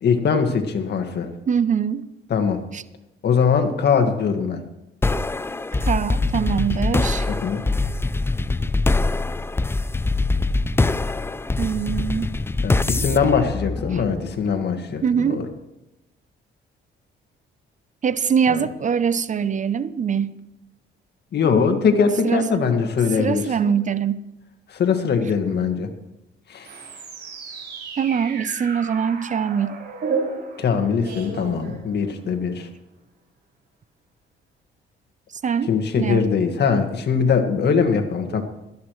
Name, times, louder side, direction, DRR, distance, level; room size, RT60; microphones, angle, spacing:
voice 1, 0.0-1.3 2.3-2.6 3.2-4.6 7.3-7.6 12.6-15.5 18.5-18.7 21.3-23.7 24.7-25.9 26.5-26.7 30.6-32.7 35.7-38.4, left 6 dB, 55° left, 1.7 m, -21 dB
voice 2, 1.5-2.0 2.7-2.8 5.8-7.4 11.6-12.3 13.9-14.0 15.0-15.5 18.0-20.4 22.2-22.6 23.2-24.2 28.0-29.8 35.4-36.3 38.3-38.4, right 7 dB, 40° right, 0.6 m, -23 dB
sound 1, 5.0-14.5, left 3 dB, 10° left, 0.4 m, -23 dB
sound 2, 26.6-32.3, right 4 dB, 60° right, 5.4 m, -32 dB
17.0 x 13.5 x 3.2 m
cardioid pair, 90°, 20 cm